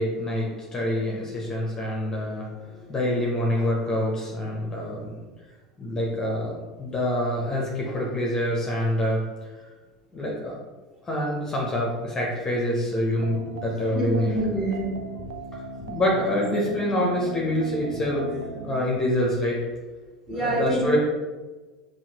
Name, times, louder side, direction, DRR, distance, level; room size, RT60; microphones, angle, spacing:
voice 1, 0.0-5.2 5.8-6.5 6.8-9.2 10.1-10.5 11.1-14.4 15.8-19.6 20.4-21.0, left 1 dB, 20° left, -3 dB, 0.9 m, -26 dB
sound 1, 13.2-18.8, right 4 dB, 60° right, 0.3 m, -38 dB
voice 2, 13.9-15.0 20.3-21.0, right 1 dB, 20° right, -5 dB, 1.4 m, -26 dB
5.5 x 2.6 x 2.9 m, 1.3 s
figure-of-eight pair, 75°, 3 cm